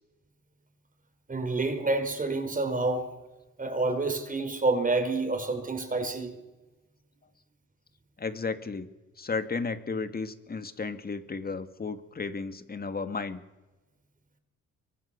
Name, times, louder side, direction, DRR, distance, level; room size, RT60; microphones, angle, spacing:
voice 1, 1.3-3.1 3.6-6.4, right 3 dB, 25° right, 8 dB, 4.7 m, -28 dB
voice 2, 8.2-8.9 9.2-13.4, left 4 dB, 30° left, 10 dB, 2.2 m, -33 dB
24.5 x 24.5 x 7.0 m, 1.1 s
cardioid pair, 90°, 30 cm